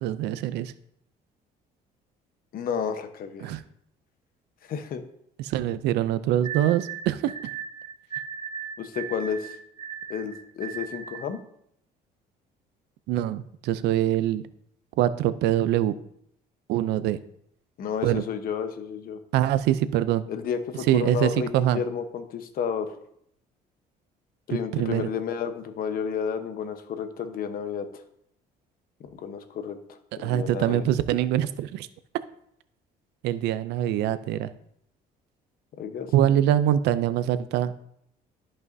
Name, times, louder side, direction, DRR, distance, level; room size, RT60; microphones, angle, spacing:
voice 1, 0.0-0.7 3.4-3.6 5.4-7.3 13.1-14.4 15.0-15.9 16.7-17.2 18.0-18.2 19.3-20.2 20.9-21.8 24.5-25.1 30.2-31.9 33.2-34.5 36.1-37.8, right 12 dB, 85° right, 14 dB, 0.5 m, -24 dB
voice 2, 2.5-3.5 4.6-5.0 8.8-9.6 10.1-11.4 17.8-19.2 20.3-23.0 24.5-28.0 29.0-30.8 35.8-36.4, left 7 dB, 60° left, 8 dB, 1.0 m, -32 dB
sound 1, 6.4-11.3, right 8 dB, 25° right, 0.7 m, -37 dB
13.0 x 5.5 x 2.7 m, 0.72 s
cardioid pair, 110°, 17 cm